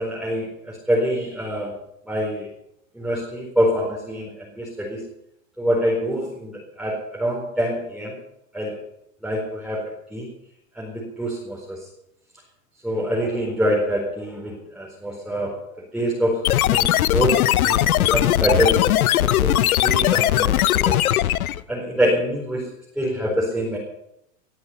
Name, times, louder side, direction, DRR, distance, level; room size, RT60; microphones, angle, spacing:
voice 1, 0.0-1.7 2.1-2.5 2.9-5.0 5.6-8.1 8.5-8.7 9.2-10.3 10.7-11.8 12.8-15.6 15.9-17.4 17.6-18.8 19.2-21.0 21.7-22.6 23.0-23.8, equal, ahead, -5 dB, 4.4 m, -25 dB
sound 1, 16.4-21.6, left 13 dB, 80° left, 1.0 m, -19 dB
20.5 x 12.0 x 5.7 m, 0.78 s
supercardioid pair, 150°, 42 cm